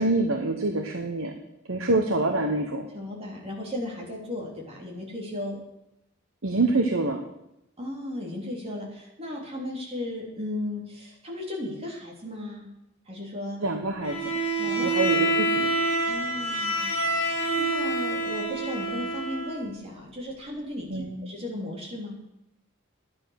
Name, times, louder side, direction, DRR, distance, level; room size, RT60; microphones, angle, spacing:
voice 1, 0.0-1.3 1.7-2.8 6.4-7.2 13.6-14.3 14.8-15.7 20.9-21.2, right 2 dB, 75° right, 4 dB, 1.2 m, -26 dB
voice 2, 2.9-5.6 7.8-12.7 13.1-13.6 14.6-15.0 16.1-22.2, left 1 dB, 30° right, -2 dB, 3.3 m, -35 dB
Bowed string instrument, 14.0-19.6, right 1 dB, 30° left, 4.2 m, -27 dB
11.5 x 10.5 x 6.5 m, 0.85 s
head